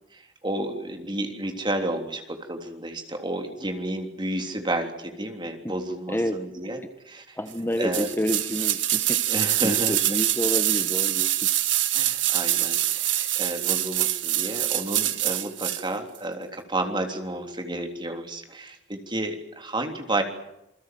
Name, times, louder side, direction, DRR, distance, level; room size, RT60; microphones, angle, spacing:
voice 1, 0.1-6.8 7.1-7.4 7.8-8.1 9.3-10.0 11.9-20.2, right 1 dB, 25° right, 4 dB, 3.4 m, -31 dB
voice 2, 6.1-6.4 7.3-9.2 9.6-11.5, equal, 15° left, 8 dB, 1.3 m, -29 dB
sound 1, 7.9-15.8 16.1-16.2, right 13 dB, 90° right, 1.7 m, -25 dB
28.0 x 21.0 x 7.8 m, 0.86 s
head